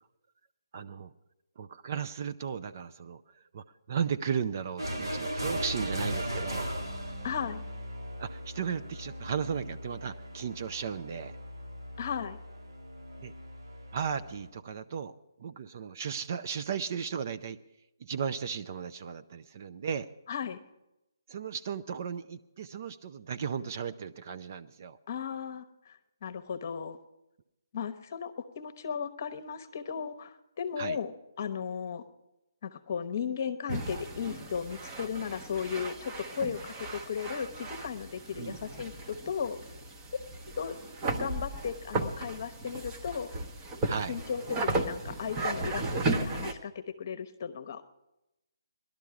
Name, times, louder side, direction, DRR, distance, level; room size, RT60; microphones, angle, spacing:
voice 1, 0.7-1.1 1.6-3.2 3.5-6.7 8.2-11.3 13.2-13.3 13.9-17.6 18.0-20.1 21.3-25.0 30.8-31.0 38.4-38.6 43.8-44.1, right 7 dB, 40° right, 12 dB, 0.5 m, -35 dB
sound 1, 4.8-14.5, equal, 85° right, 2.0 m, -38 dB
voice 2, 7.2-7.6 12.0-12.4 20.3-20.6 25.1-27.0 27.7-31.1 31.4-32.0 32.6-39.6 40.1-40.2 40.6-40.8 41.1-43.3 44.1-47.8, left 7 dB, 40° left, 12 dB, 0.9 m, -36 dB
sound 2, 33.7-46.5, right 2 dB, 20° right, 0.9 m, -35 dB
17.5 x 12.0 x 4.8 m, 0.92 s
figure-of-eight pair, 145°, 2 cm